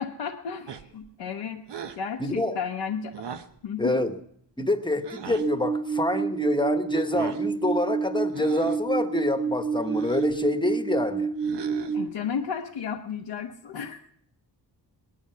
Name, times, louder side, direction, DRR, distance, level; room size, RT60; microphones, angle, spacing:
voice 1, 0.0-1.6 2.0-3.2 3.6-4.1 11.9-14.1, left 6 dB, 90° left, 0.9 m, -33 dB
sound 1, 0.7-1.1 1.7-2.1 3.1-3.6 5.0-5.5 6.9-7.5 8.3-8.8 9.8-10.4 11.4-12.1, right 7 dB, 70° right, 1.0 m, -39 dB
voice 2, 2.2-2.6 3.8-4.2 4.6-11.3, left 1 dB, 10° left, 1.1 m, -27 dB
sound 2, 5.4-12.1, right 5 dB, 20° right, 1.4 m, -28 dB
20.0 x 11.0 x 5.7 m
wide cardioid pair, 100°, 43 cm